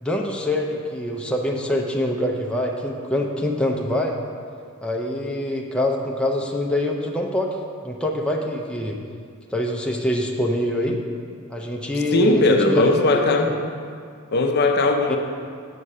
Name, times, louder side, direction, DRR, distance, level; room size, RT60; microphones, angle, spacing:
voice 1, 0.0-4.2 4.8-7.5 7.8-9.0 9.5-11.0 11.5-13.5 15.1-15.2, left 1 dB, 5° left, 0 dB, 0.5 m, -25 dB
voice 2, 12.1-13.5 14.3-15.2, left 2 dB, 45° left, 4 dB, 0.6 m, -18 dB
7.3 x 6.4 x 5.5 m, 2.2 s
head